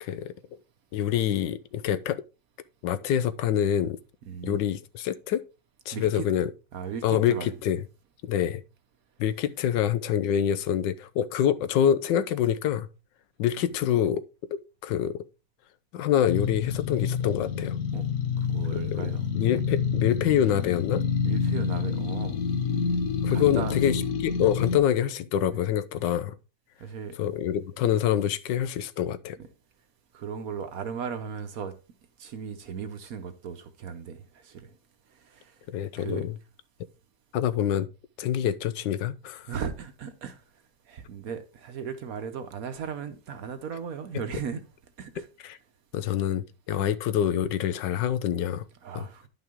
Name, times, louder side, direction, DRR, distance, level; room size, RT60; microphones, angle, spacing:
voice 1, 0.0-0.3 0.9-2.2 2.8-4.0 4.4-5.4 5.9-6.5 7.0-7.8 8.2-8.6 9.2-12.9 13.4-14.2 14.5-15.2 15.9-17.8 18.9-19.0 19.3-21.0 23.2-26.3 27.2-29.4 35.7-36.4 37.3-37.9 38.2-39.5 45.2-45.6 45.9-48.6 48.9-49.1, left 10 dB, 80° left, 1.3 m, -26 dB
voice 2, 4.3-4.6 5.9-6.3 6.7-7.5 17.9-18.1 18.5-19.3 21.2-22.4 23.3-23.8 25.5-25.6 26.8-27.2 30.1-31.8 32.2-34.7 35.2-35.5 36.0-36.3 39.5-40.4 40.9-44.6 45.0-45.3 48.8-49.3, right 6 dB, 60° right, 1.1 m, -36 dB
sound 1, 16.3-24.8, left 6 dB, 60° left, 1.3 m, -28 dB
10.5 x 5.7 x 3.5 m
omnidirectional pair, 2.0 m